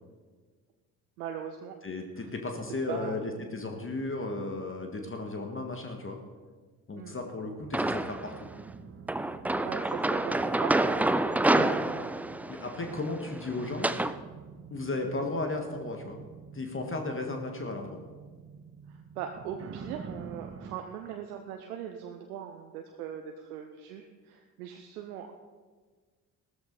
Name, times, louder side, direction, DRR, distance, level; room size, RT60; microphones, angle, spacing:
voice 1, 1.2-1.7 2.2-2.3 2.9-3.2 6.9-7.2 9.6-12.1 18.9-25.3, right 9 dB, 70° right, 5 dB, 0.9 m, -40 dB
voice 2, 1.8-6.2 6.9-8.3 11.5-11.7 12.5-13.9 14.7-16.2 16.5-18.0, left 2 dB, 25° left, 4 dB, 1.8 m, -35 dB
sound 1, 7.6-20.8, right 6 dB, 30° right, 1.0 m, -47 dB
sound 2, 7.7-8.3 9.1-14.2, right 2 dB, 5° right, 0.3 m, -28 dB
16.0 x 13.5 x 4.1 m, 1.4 s
figure-of-eight pair, 45°, 47 cm